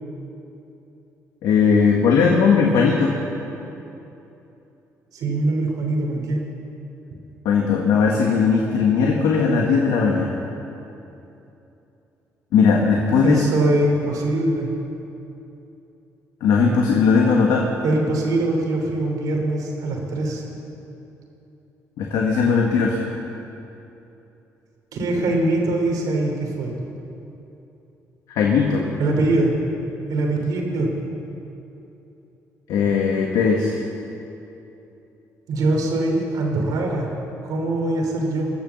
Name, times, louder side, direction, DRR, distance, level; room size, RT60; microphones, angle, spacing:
voice 1, 1.4-3.1 7.4-10.4 12.5-13.4 16.4-17.7 22.0-23.0 28.3-28.9 32.7-33.9, left 5 dB, 85° left, -1 dB, 1.5 m, -18 dB
voice 2, 5.1-6.4 13.2-14.7 17.8-20.4 24.9-26.7 29.0-29.5 30.1-30.9 35.5-37.1 37.4-38.5, right 2 dB, 75° right, 1 dB, 3.2 m, -22 dB
22.0 x 7.4 x 7.0 m, 2.9 s
cardioid pair, 85°, 6 cm